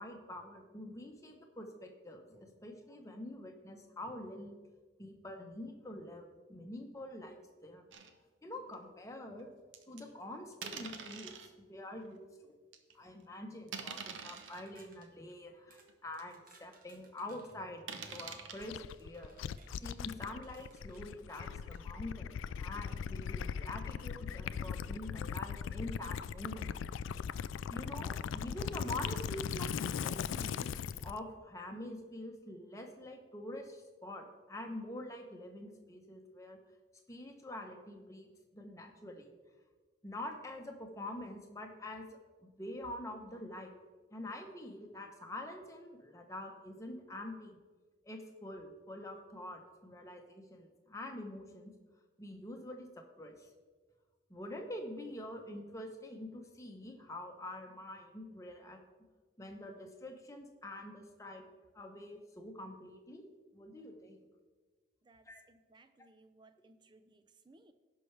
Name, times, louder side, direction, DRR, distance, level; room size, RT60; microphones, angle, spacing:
voice 1, 0.0-4.6 5.0-7.8 8.4-9.5 9.9-12.5 12.9-19.4 19.8-26.7 27.7-29.7 30.0-30.7 31.0-36.6 37.1-39.3 40.0-42.0 42.4-43.8 44.1-47.6 48.0-51.7 52.2-53.5 54.3-58.8 59.4-61.5 61.7-63.3 63.5-64.2 65.3-65.4, left 1 dB, 15° left, 3 dB, 0.9 m, -46 dB
sound 1, 7.9-8.1 8.7-8.8 9.7-10.0 10.6-11.5 12.1-12.2 12.7-12.9 13.7-14.6 15.3-15.4 15.9-16.0 16.2-16.3 17.9-18.6, right 6 dB, 75° right, 0.8 m, -45 dB
sound 2, 13.9-15.1 15.7-15.9 16.1-17.6 18.1-19.7 20.4-21.1 21.7-21.9, right 4 dB, 45° right, 1.1 m, -64 dB
Gurgling / Liquid, 18.6-31.2, left 7 dB, 80° left, 0.3 m, -39 dB
voice 2, 65.0-67.7, right 2 dB, 25° right, 10 dB, 0.5 m, -63 dB
16.5 x 5.6 x 3.3 m, 1.4 s
head